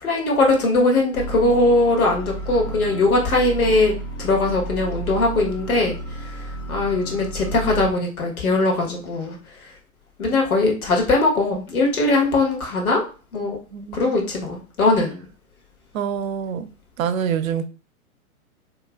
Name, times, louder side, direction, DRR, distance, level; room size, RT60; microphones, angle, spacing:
voice 1, 0.0-3.9 4.2-5.9 6.7-9.4 10.2-13.0 13.3-13.6 13.9-15.2, left 2 dB, 80° left, 1.4 m, -20 dB
In The Maze II, 1.2-7.9, right 1 dB, 25° left, 0.3 m, -32 dB
voice 2, 13.7-14.0 15.9-16.7 17.0-17.6, right 8 dB, 70° right, 0.6 m, -25 dB
3.0 x 2.9 x 2.4 m
hypercardioid pair, 115°, 43 cm